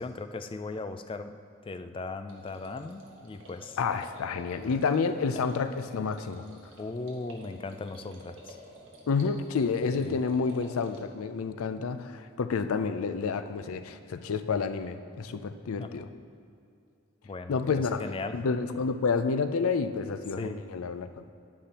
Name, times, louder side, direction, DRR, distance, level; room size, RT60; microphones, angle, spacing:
voice 1, 0.0-1.4 1.6-3.8 6.8-8.6 10.0-10.2 15.8-16.1 17.2-18.4 20.4-20.6, left 3 dB, 25° left, 9 dB, 0.3 m, -38 dB
sound 1, 2.3-11.0, right 1 dB, 65° right, 1.4 m, -51 dB
voice 2, 3.8-6.5 9.1-16.1 17.5-18.0 18.3-21.3, left 5 dB, 90° left, 10 dB, 0.4 m, -29 dB
10.0 x 9.3 x 2.9 m, 2.5 s
head